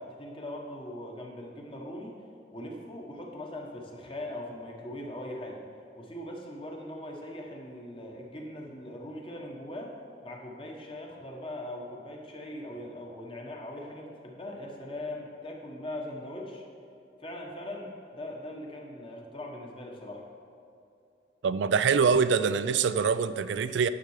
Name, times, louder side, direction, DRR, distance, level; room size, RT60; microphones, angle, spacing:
voice 1, 0.0-2.2 2.5-5.6 6.0-9.9 10.2-16.6 17.2-20.3, left 1 dB, 30° left, 0 dB, 1.3 m, -40 dB
voice 2, 21.4-23.9, right 6 dB, 80° right, 13 dB, 0.4 m, -24 dB
10.0 x 6.8 x 4.9 m, 2.6 s
head